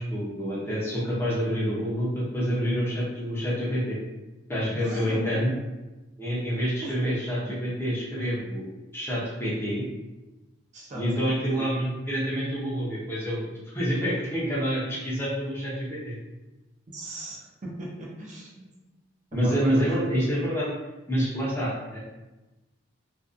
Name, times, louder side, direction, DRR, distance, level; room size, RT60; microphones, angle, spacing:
voice 1, 0.0-4.0 4.5-5.5 6.2-8.7 8.9-9.8 10.9-13.5 13.7-16.1 19.3-20.7 21.1-22.0, equal, 10° left, -7 dB, 0.6 m, -27 dB
voice 2, 4.7-5.4 6.8-7.1 7.4-7.6 10.7-11.7 16.9-18.7 19.3-19.8, right 2 dB, 35° right, -4 dB, 0.4 m, -39 dB
2.5 x 2.2 x 2.4 m, 1.1 s
head